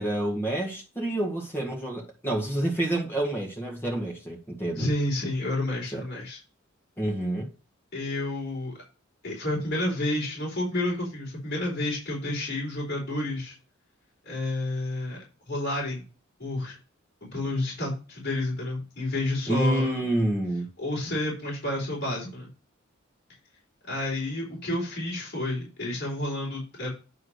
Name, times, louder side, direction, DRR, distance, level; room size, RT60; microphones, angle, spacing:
voice 1, 0.0-4.9 5.9-6.0 7.0-7.5 19.5-20.6, right 1 dB, 10° left, 1.6 m, -28 dB
voice 2, 4.8-6.4 7.9-8.7 9.2-13.5 14.2-15.2 15.5-16.0 16.4-16.8 17.3-20.0 20.8-22.5 23.9-26.9, left 1 dB, 55° left, 4.4 m, -30 dB
9.7 x 3.6 x 6.5 m
head